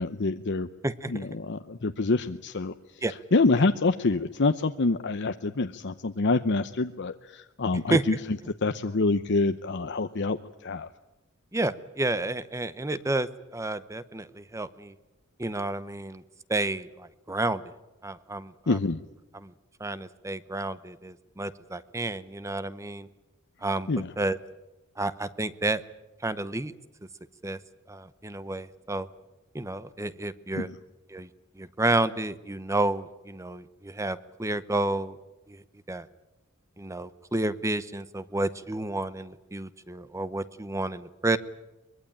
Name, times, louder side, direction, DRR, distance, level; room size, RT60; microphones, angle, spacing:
voice 1, 0.0-0.7 1.1-3.0 3.3-10.4 10.6-10.9 18.7-19.0 23.9-24.1 30.5-30.8, left 3 dB, 55° left, 9 dB, 0.8 m, -26 dB
voice 2, 0.8-1.3 3.0-3.1 7.9-8.0 11.5-14.9 15.4-16.2 16.5-17.6 18.0-18.8 19.3-19.5 19.8-23.1 23.6-23.9 24.2-24.4 25.0-25.8 26.2-26.7 27.4-27.6 27.9-29.1 29.5-30.7 31.1-31.3 31.6-35.2 35.5-35.6 35.9-36.1 36.8-41.4, right 2 dB, 15° right, 15 dB, 0.8 m, -30 dB
23.5 x 22.0 x 8.8 m, 1.0 s
head